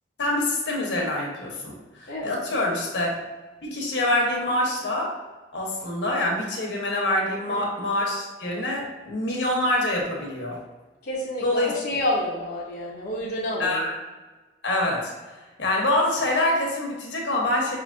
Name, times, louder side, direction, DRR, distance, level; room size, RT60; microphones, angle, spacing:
voice 1, 0.2-1.7 2.0-3.2 3.6-5.2 5.5-10.6 11.4-11.7 13.6-13.9 14.6-15.1 15.6-17.8, left 1 dB, 75° left, -1 dB, 1.1 m, -25 dB
voice 2, 2.1-2.4 7.5-7.6 11.0-13.9, left 1 dB, 55° left, -7 dB, 0.8 m, -29 dB
5.6 x 2.9 x 2.6 m, 1.2 s
head